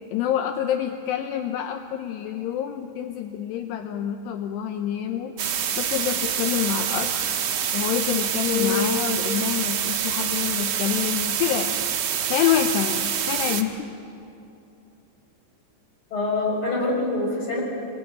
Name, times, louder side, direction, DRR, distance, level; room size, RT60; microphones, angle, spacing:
voice 1, 0.1-5.3 5.8-7.1 7.7-11.8 12.3-13.9, left 10 dB, 75° left, 6 dB, 2.7 m, -27 dB
sound 1, 5.4-13.6, right 8 dB, 65° right, 2.0 m, -26 dB
voice 2, 8.5-8.9 10.6-10.7 16.1-17.6, left 3 dB, 25° left, -1 dB, 6.5 m, -25 dB
26.5 x 21.5 x 9.6 m, 2.8 s
omnidirectional pair, 5.5 m